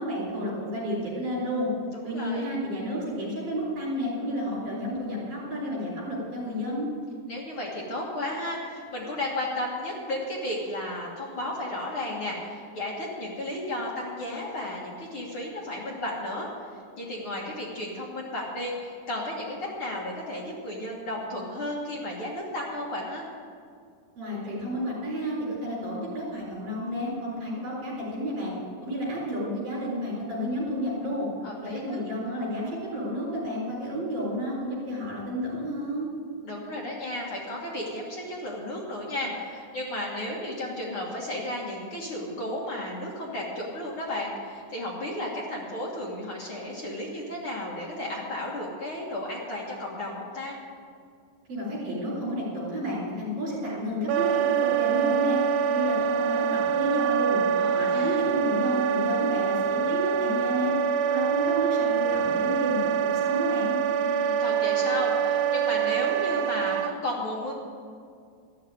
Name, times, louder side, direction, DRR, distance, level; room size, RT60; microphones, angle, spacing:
voice 1, 0.0-1.7 2.0-6.9 24.1-28.5 28.8-31.3 31.7-36.1 51.5-55.4 55.7-57.4 57.7-60.7 61.0-63.8, equal, 40° right, -7 dB, 5.0 m, -31 dB
voice 2, 2.1-2.5 7.3-16.5 17.0-23.2 31.4-32.0 36.4-50.6 57.6-58.2 63.9-67.5, left 1 dB, 60° left, -3 dB, 1.4 m, -33 dB
Wind instrument woodwind instrument, 54.1-66.9, right 8 dB, 85° right, 2.6 m, -25 dB
13.5 x 6.6 x 9.2 m, 2.2 s
omnidirectional pair, 4.7 m